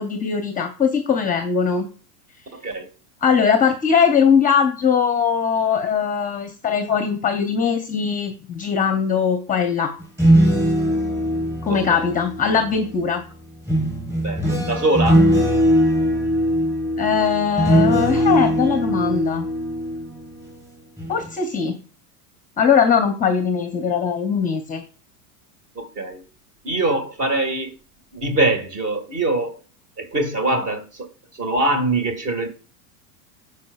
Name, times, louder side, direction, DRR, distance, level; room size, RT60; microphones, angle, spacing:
voice 1, 0.0-1.9 3.2-9.9 11.6-13.2 17.0-19.5 21.1-21.8 22.6-24.8, left 6 dB, 20° left, 0.7 m, -20 dB
voice 2, 2.5-2.9 11.7-12.1 14.2-15.3 25.8-26.2 26.6-27.8 28.1-29.6 30.0-32.5, right 2 dB, 35° right, 1.9 m, -23 dB
sound 1, 10.0-12.9 13.7-20.6 21.0-21.3, equal, 5° right, 3.8 m, -20 dB
12.5 x 4.9 x 2.3 m
supercardioid pair, 125°, 46 cm